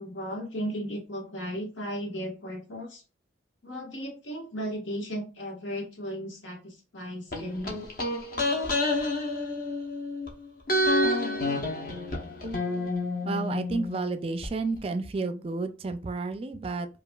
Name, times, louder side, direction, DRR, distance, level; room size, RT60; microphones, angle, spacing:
voice 1, 0.0-3.0 3.6-7.8, equal, 90° left, 0 dB, 1.4 m, -35 dB
sound 1, 7.3-10.3 10.7-14.5 14.8-14.9, left 1 dB, 50° left, 0.8 m, -29 dB
voice 2, 13.2-16.9, right 3 dB, 30° right, 9 dB, 0.3 m, -31 dB
4.9 x 2.4 x 2.3 m, 0.33 s
head